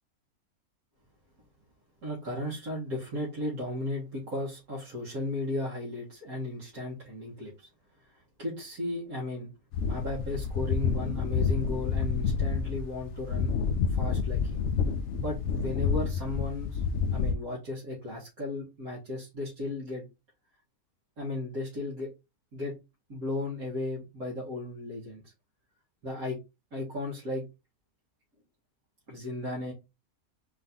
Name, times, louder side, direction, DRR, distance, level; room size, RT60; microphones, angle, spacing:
voice 1, 2.0-7.7 8.1-9.5 9.9-13.5 13.9-14.6 15.2-16.8 17.1-20.1 21.2-22.1 22.5-22.8 23.1-25.3 26.0-26.4 26.7-27.4 29.1-29.7, left 2 dB, 75° right, -6 dB, 2.1 m, -35 dB
sound 1, 9.7-17.3, left 5 dB, 65° left, 0.8 m, -29 dB
4.3 x 2.8 x 3.8 m, 0.25 s
omnidirectional pair, 1.5 m